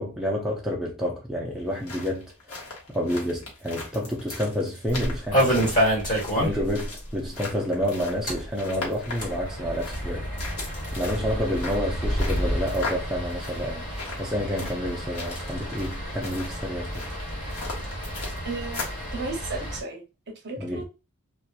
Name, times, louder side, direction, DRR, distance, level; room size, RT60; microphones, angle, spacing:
voice 1, 0.0-5.8 6.4-10.3 10.9-13.9 14.2-17.1 20.6-20.8, equal, ahead, 0.4 m, -29 dB
sound 1, 1.6-19.1, left 3 dB, 90° left, 1.0 m, -39 dB
sound 2, 4.9-6.8 7.1-7.2 7.5-7.6 8.1-19.8, equal, 40° left, 1.3 m, -29 dB
voice 2, 18.4-20.8, right 3 dB, 50° right, 0.7 m, -35 dB
2.8 x 2.2 x 2.3 m
head